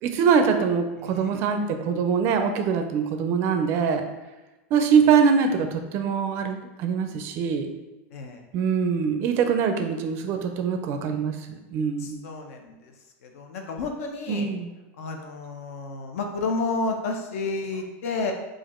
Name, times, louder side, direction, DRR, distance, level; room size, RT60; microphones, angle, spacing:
voice 1, 0.0-4.1 4.7-7.7 8.5-11.3 11.7-12.2 14.3-14.7, right 6 dB, 35° right, 6 dB, 0.4 m, -23 dB
voice 2, 8.1-8.4 12.0-12.7 13.2-14.5 15.0-18.3, left 3 dB, 75° left, 3 dB, 0.8 m, -31 dB
4.9 x 2.5 x 4.3 m, 1.1 s
supercardioid pair, 175°, 8 cm